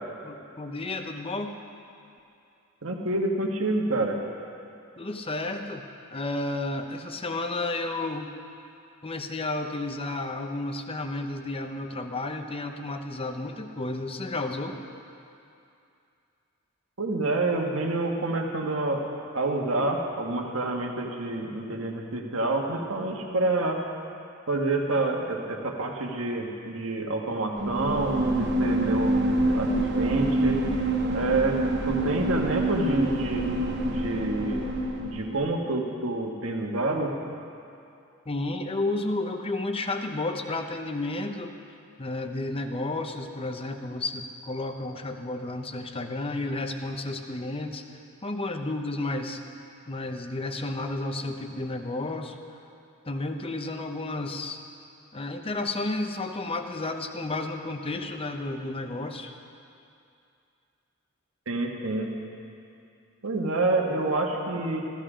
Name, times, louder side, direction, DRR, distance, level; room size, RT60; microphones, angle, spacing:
voice 1, 0.2-1.6 5.0-5.8 6.1-8.3 9.0-14.8 38.3-41.5 42.0-47.8 48.2-49.4 49.9-52.3 53.1-54.6 55.1-59.3, left 2 dB, 25° left, 5 dB, 0.8 m, -32 dB
voice 2, 2.8-4.2 17.0-19.1 19.3-23.8 24.5-29.2 29.5-30.6 31.1-31.6 31.8-33.5 33.8-34.6 35.0-37.1 61.5-62.1 63.2-64.8, right 2 dB, 75° right, 1 dB, 1.6 m, -28 dB
sound 1, 27.6-35.4, right 1 dB, 55° right, 1.0 m, -26 dB
15.0 x 14.5 x 5.0 m, 2.6 s
head